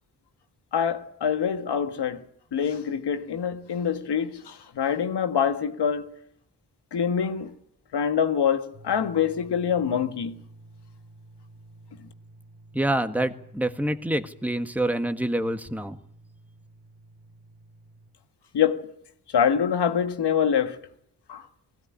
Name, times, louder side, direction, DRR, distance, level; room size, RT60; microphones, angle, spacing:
voice 1, 0.7-2.2 2.5-6.1 6.9-7.5 7.9-10.4 18.5-18.9 19.3-20.8 21.3-21.4, left 7 dB, 75° left, 1.7 m, -25 dB
sound 1, 8.7-18.1, right 2 dB, 90° right, 4.7 m, -51 dB
voice 2, 12.7-16.0, right 1 dB, 5° right, 1.7 m, -26 dB
20.5 x 16.5 x 9.9 m
supercardioid pair, 40°, 41 cm